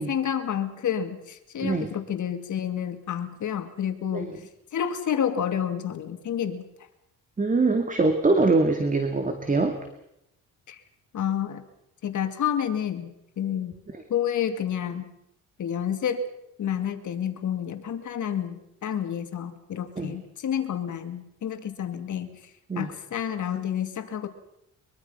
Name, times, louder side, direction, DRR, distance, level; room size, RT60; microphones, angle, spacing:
voice 1, 0.0-4.3 4.7-6.7 10.7-10.8 11.1-11.6 12.0-13.8 14.1-15.1 15.6-16.3 16.6-22.3 22.8-24.3, left 9 dB, 60° left, 8 dB, 2.4 m, -29 dB
voice 2, 7.4-9.8 20.0-20.1 22.7-22.9, right 3 dB, 25° right, 6 dB, 2.3 m, -23 dB
23.0 x 23.0 x 5.7 m, 0.80 s
cardioid pair, 110°, 33 cm